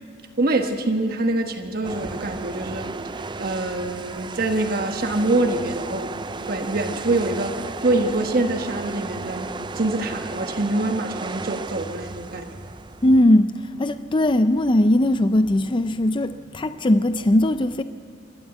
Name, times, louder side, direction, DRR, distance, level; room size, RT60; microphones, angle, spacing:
voice 1, 0.4-2.9 3.4-6.1 6.5-7.5 7.8-12.5, right 2 dB, 55° right, 1.4 m, -25 dB
sound 1, 1.8-13.2, right 3 dB, 25° right, 0.5 m, -34 dB
voice 2, 13.0-17.8, left 1 dB, 25° left, 0.5 m, -19 dB
27.0 x 12.5 x 8.2 m
head